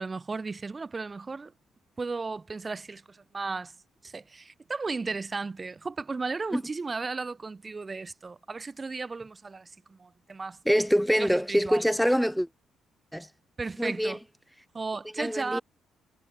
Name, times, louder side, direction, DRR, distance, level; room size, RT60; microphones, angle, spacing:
voice 1, 0.0-1.5 2.0-3.7 4.0-10.6 11.2-11.8 13.6-14.2 14.7-15.6, right 4 dB, 30° right, 1.4 m, -35 dB
voice 2, 10.7-12.5 13.1-13.3 13.8-14.2 15.2-15.6, equal, ahead, 1.8 m, -25 dB
cardioid pair, 90°, 0 cm